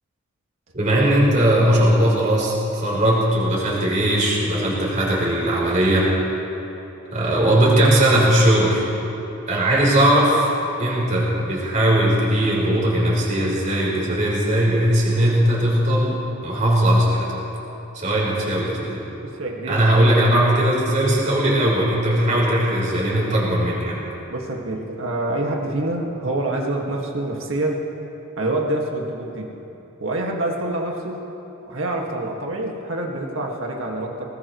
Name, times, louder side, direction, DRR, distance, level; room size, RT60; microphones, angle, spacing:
voice 1, 0.7-6.1 7.1-8.9 9.5-10.5 10.8-17.3 17.9-19.0 19.7-24.0, right 1 dB, 35° right, -5 dB, 4.1 m, -19 dB
voice 2, 19.2-19.8 24.3-27.8 28.4-29.5 30.0-31.2 31.7-34.3, right 1 dB, 65° right, 0 dB, 2.0 m, -26 dB
20.5 x 19.5 x 3.2 m, 3.0 s
head